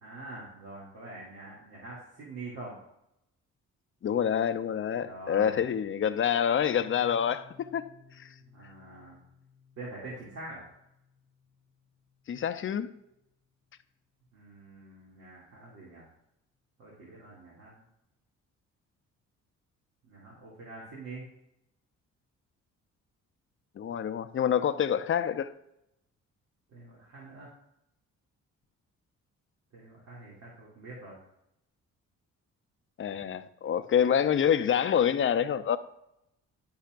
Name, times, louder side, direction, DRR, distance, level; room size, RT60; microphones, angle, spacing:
voice 1, 0.0-2.8 4.9-5.8 8.4-9.2 9.8-10.7 14.3-16.1 16.8-17.8 20.0-21.3 26.7-27.5 29.7-31.2, right 2 dB, 60° right, 2.4 m, -45 dB
voice 2, 4.0-7.8 8.2-8.3 12.3-12.9 23.8-25.5 33.0-35.8, left 8 dB, 45° left, 0.6 m, -27 dB
Piano, 6.6-14.0, left 5 dB, 10° left, 1.1 m, -59 dB
12.0 x 5.6 x 2.5 m
cardioid pair, 90°, 30 cm